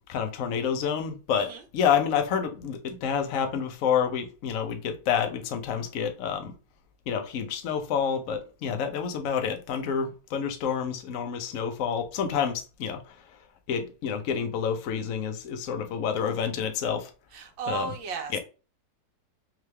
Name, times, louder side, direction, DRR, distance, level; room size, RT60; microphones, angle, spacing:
voice 1, 0.1-6.5 7.1-13.0 13.7-17.1 17.7-17.9 18.3-18.4, left 7 dB, 60° left, 0.9 m, -28 dB
voice 2, 17.3-18.4, right 5 dB, 90° right, 1.6 m, -34 dB
3.7 x 3.2 x 3.2 m
omnidirectional pair, 2.0 m